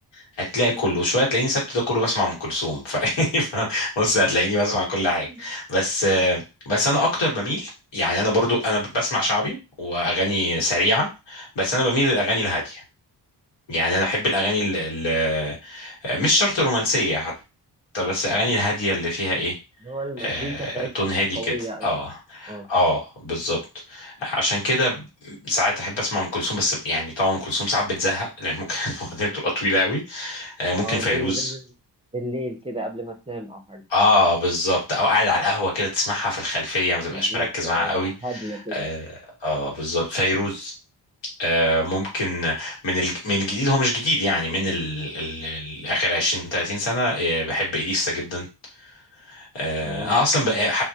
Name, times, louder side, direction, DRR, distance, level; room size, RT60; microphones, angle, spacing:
voice 1, 0.1-12.8 13.7-17.3 17.9-19.6 20.2-21.5 21.8-23.6 23.9-31.5 33.9-38.1 38.7-39.0 39.4-40.7 41.4-48.5 49.2-50.8, left 1 dB, 90° left, -3 dB, 1.3 m, -24 dB
voice 2, 5.1-5.4 19.8-22.0 22.5-22.7 30.8-31.7 32.1-33.8 37.1-38.9 49.8-50.1, right 1 dB, 15° right, 3 dB, 0.5 m, -33 dB
2.1 x 2.1 x 2.7 m, 0.27 s
cardioid pair, 60°, 43 cm